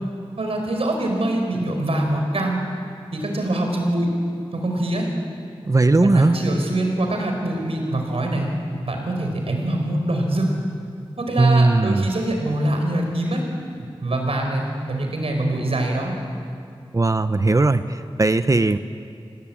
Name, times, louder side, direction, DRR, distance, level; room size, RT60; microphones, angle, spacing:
voice 1, 0.4-2.6 3.1-4.1 4.5-5.1 5.9-8.5 8.9-10.5 11.2-13.4 14.0-16.1, right 1 dB, 90° right, 2 dB, 4.9 m, -24 dB
voice 2, 5.6-6.4 11.4-12.1 16.9-18.8, right 2 dB, 35° right, 11 dB, 0.7 m, -18 dB
27.0 x 19.0 x 8.7 m, 2.4 s
wide cardioid pair, 90°, 10 cm